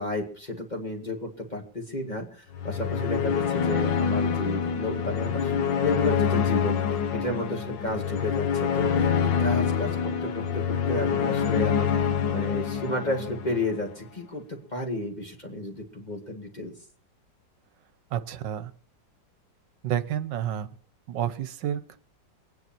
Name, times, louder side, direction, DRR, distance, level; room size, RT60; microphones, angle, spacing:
voice 1, 0.0-6.8 7.1-9.1 9.4-16.7, left 1 dB, 25° left, 2 dB, 2.3 m, -32 dB
sound 1, 2.5-13.9, left 7 dB, 90° left, 1.8 m, -26 dB
voice 2, 18.1-18.7 19.8-20.7 21.1-22.0, right 10 dB, 75° right, 13 dB, 1.5 m, -30 dB
24.0 x 9.7 x 4.5 m, 0.43 s
omnidirectional pair, 1.9 m